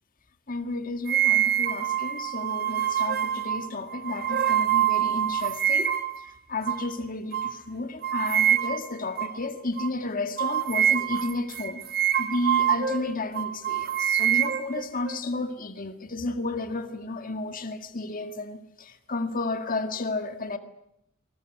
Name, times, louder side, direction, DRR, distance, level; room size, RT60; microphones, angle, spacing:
voice 1, 0.5-11.8 12.2-20.6, left 2 dB, 45° left, 1.9 m, -32 dB
sound 1, 1.1-6.2 6.7-6.9 7.3-7.5 8.0-8.9 9.2-9.4 9.8-9.9 10.4-13.0 13.4-15.2, right 10 dB, 50° right, 1.6 m, -25 dB
24.5 x 20.0 x 9.3 m
head